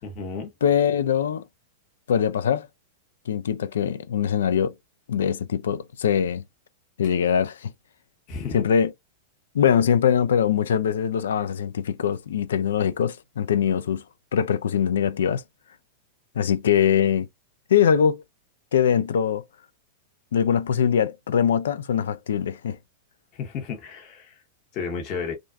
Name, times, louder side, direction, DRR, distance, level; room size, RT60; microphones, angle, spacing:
voice 1, 0.0-0.5 8.3-8.6 23.3-24.4 24.7-25.3, left 5 dB, 40° left, 1.0 m, -32 dB
voice 2, 0.6-1.4 2.1-2.7 3.3-4.7 5.1-6.4 7.0-7.7 8.5-8.9 9.5-14.0 14.3-15.4 16.4-17.3 17.7-18.2 18.7-19.4 20.3-22.8, left 8 dB, 75° left, 0.3 m, -22 dB
2.4 x 2.3 x 2.2 m
hypercardioid pair, 105°, 0 cm